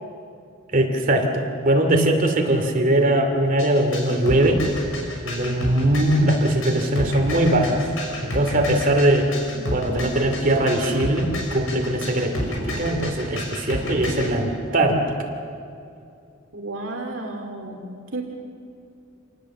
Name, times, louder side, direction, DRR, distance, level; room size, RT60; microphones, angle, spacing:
voice 1, 0.7-4.6 5.2-7.8 8.2-9.3 9.7-15.3, right 1 dB, 40° right, 4 dB, 2.6 m, -21 dB
sound 1, 3.6-14.3, left 1 dB, 75° left, 6.1 m, -30 dB
voice 2, 16.5-18.2, right 2 dB, 65° right, 1 dB, 2.5 m, -33 dB
27.5 x 19.0 x 7.3 m, 2.6 s
head